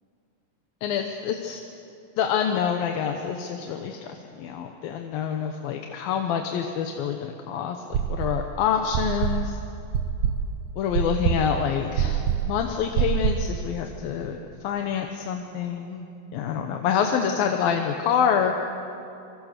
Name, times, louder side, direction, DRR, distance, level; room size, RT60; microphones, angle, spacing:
voice 1, 0.8-1.6 2.2-9.6 10.8-14.4 14.6-18.5, left 8 dB, 90° left, 4 dB, 2.9 m, -27 dB
sound 1, 7.9-8.5 8.9-13.6, right 8 dB, 65° right, 2.5 m, -25 dB
26.0 x 24.5 x 6.7 m, 2.7 s
omnidirectional pair, 4.0 m